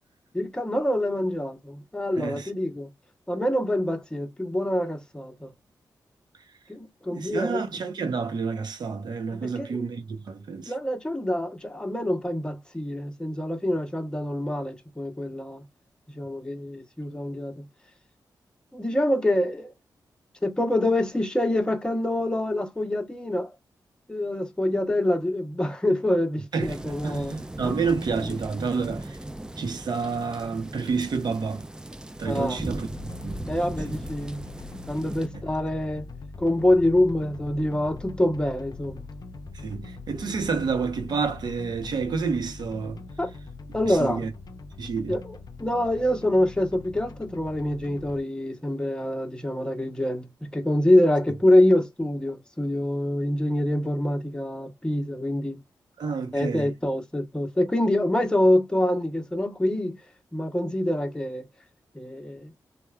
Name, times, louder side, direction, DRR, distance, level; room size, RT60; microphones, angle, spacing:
voice 1, 0.3-2.9 3.3-5.5 6.7-7.6 9.4-9.8 10.7-15.6 16.1-17.6 18.7-19.7 20.4-23.5 24.1-27.4 27.7-27.8 32.3-32.6 33.5-34.4 34.9-36.1 36.4-39.0 43.2-43.3 43.7-44.2 45.1-55.6 56.3-60.0 60.3-61.4 61.9-62.5, left 1 dB, 10° left, 0.8 m, -25 dB
voice 2, 2.2-2.5 7.1-10.7 26.5-29.2 29.6-31.6 32.2-33.4 39.5-43.0 43.9-44.3 44.8-45.2 56.0-56.7, right 5 dB, 65° right, 0.7 m, -29 dB
sound 1, 26.6-35.3, right 1 dB, 10° right, 0.4 m, -37 dB
sound 2, 32.9-48.2, left 3 dB, 55° left, 0.5 m, -42 dB
3.0 x 2.2 x 2.2 m
cardioid pair, 65°, 8 cm